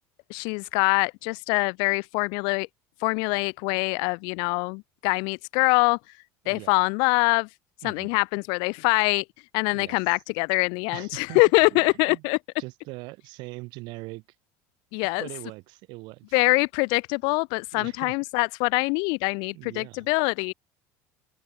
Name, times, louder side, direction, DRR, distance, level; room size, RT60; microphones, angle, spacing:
voice 1, 0.3-2.7 3.0-6.0 6.5-7.5 7.8-9.2 9.5-12.4 14.9-15.3 16.3-20.5, left 33 dB, 75° left, 1.1 m, -24 dB
voice 2, 6.4-6.8 7.8-8.2 9.7-10.0 10.9-12.2 12.6-14.2 15.2-16.4 17.7-18.2 19.5-20.1, right 24 dB, 70° right, 7.3 m, -41 dB
open air
supercardioid pair, 110°, 8 cm